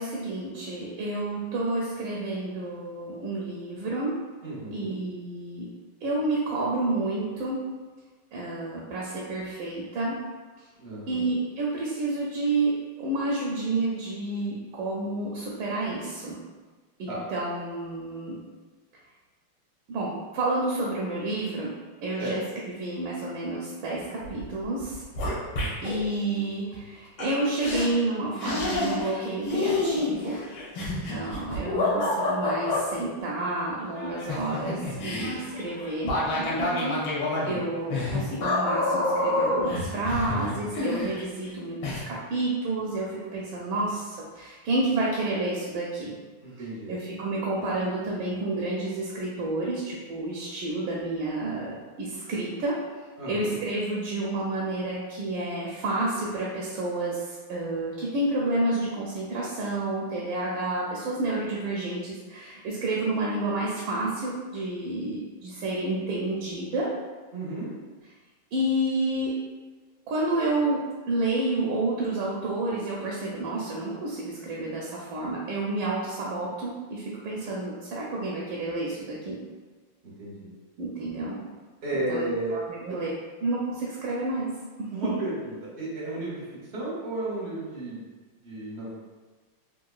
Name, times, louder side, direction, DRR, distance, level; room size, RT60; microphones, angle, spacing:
voice 1, 0.0-4.2 4.7-5.7 6.0-7.6 8.3-10.2 11.1-16.4 17.0-18.4 19.9-21.7 22.0-22.4 22.8-25.0 25.8-30.4 30.7-37.0 37.4-46.1 46.9-52.8 53.3-66.9 68.5-69.4 70.1-79.4 80.8-81.4 82.1-82.2 82.5-83.1 83.4-84.5 84.8-85.2, right 2 dB, 75° right, -4 dB, 1.3 m, -30 dB
voice 2, 4.4-5.0 10.8-11.4 17.1-17.3 22.2-22.4 25.6-26.0 37.3-37.7 46.4-47.0 53.2-53.6 67.3-67.7 80.0-80.5 81.8-82.6 82.9-83.0 84.9-88.1 88.4-88.9, right 2 dB, 50° right, -6 dB, 0.8 m, -34 dB
sound 1, 24.2-24.5 24.8-26.0 27.2-27.3 27.6-27.9 28.4-29.2 29.5-32.8 34.0-41.5 41.8-42.0, left 2 dB, 70° left, 1.5 m, -28 dB
3.7 x 2.6 x 2.3 m, 1.3 s
omnidirectional pair, 2.3 m